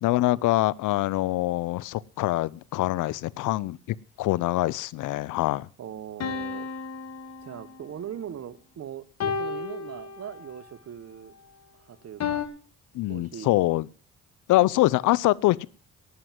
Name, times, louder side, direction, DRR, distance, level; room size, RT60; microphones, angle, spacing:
voice 1, 0.0-5.7 12.9-13.9 14.5-15.7, left 17 dB, 85° left, 0.6 m, -24 dB
voice 2, 5.8-6.7 7.4-11.3 11.8-12.5 13.1-13.6, right 9 dB, 55° right, 1.2 m, -40 dB
sound 1, 6.2-8.0 9.2-10.6 12.2-12.5, left 5 dB, 60° left, 2.0 m, -32 dB
11.5 x 9.6 x 7.4 m
cardioid pair, 90°, 30 cm